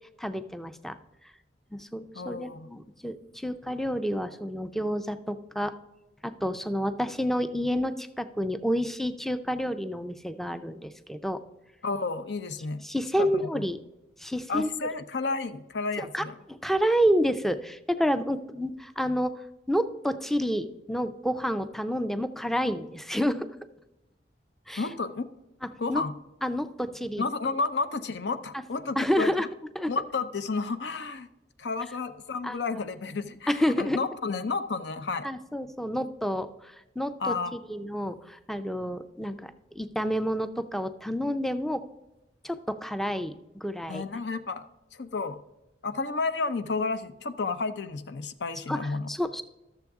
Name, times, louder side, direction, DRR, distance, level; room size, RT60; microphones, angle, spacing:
voice 1, 0.2-1.0 1.7-5.7 6.2-11.4 12.8-13.8 14.2-14.7 16.0-19.3 19.7-23.5 24.7-24.9 25.9-26.0 26.4-27.3 29.0-29.5 29.8-29.9 32.4-32.6 33.5-34.0 35.2-41.8 42.4-44.0 48.7-48.8 49.1-49.4, equal, ahead, 11 dB, 0.4 m, -29 dB
voice 2, 2.1-2.7 11.8-12.8 13.2-13.6 14.5-16.3 24.8-25.2 25.8-26.1 27.2-29.3 29.9-31.3 31.6-35.3 37.2-37.5 43.9-44.7 44.9-45.4 45.8-49.1, left 4 dB, 70° left, 11 dB, 0.6 m, -31 dB
13.0 x 6.9 x 3.5 m, 0.98 s
head